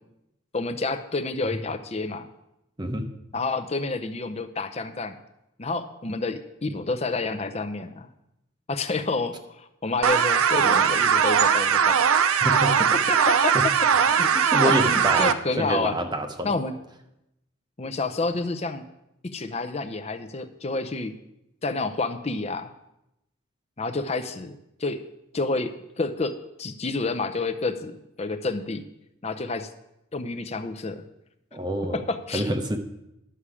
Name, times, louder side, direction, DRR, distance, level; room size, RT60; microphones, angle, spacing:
voice 1, 0.5-2.3 3.3-5.2 5.6-8.1 8.7-12.0 12.9-16.0 16.4-16.8 17.8-18.8 19.2-21.1 21.6-22.7 23.8-25.0 25.3-28.9 29.2-29.7 30.1-31.0 31.9-32.5, left 3 dB, 30° left, 9 dB, 0.6 m, -29 dB
voice 2, 2.8-3.1 12.4-12.8 13.5-13.6 14.3-15.3 15.6-16.5 31.5-32.0 32.3-32.8, right 1 dB, 20° right, 6 dB, 0.7 m, -27 dB
sound 1, 10.0-15.3, right 7 dB, 85° right, 0.5 m, -20 dB
11.5 x 7.2 x 4.9 m, 0.86 s
head